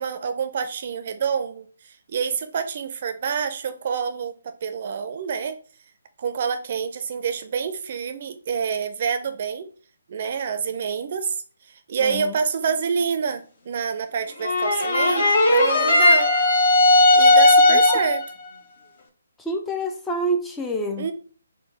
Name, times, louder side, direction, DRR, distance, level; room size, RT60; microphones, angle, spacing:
voice 1, 0.0-5.6 6.2-9.7 10.1-11.4 11.9-16.3 17.1-18.2 21.0-21.1, right 6 dB, 45° right, 0.5 m, -27 dB
voice 2, 12.0-12.3 17.7-18.0 19.4-21.1, right 1 dB, 10° left, 0.4 m, -27 dB
sound 1, 14.4-18.3, left 2 dB, 50° left, 1.0 m, -16 dB
4.3 x 2.2 x 3.3 m
figure-of-eight pair, 145°, 0 cm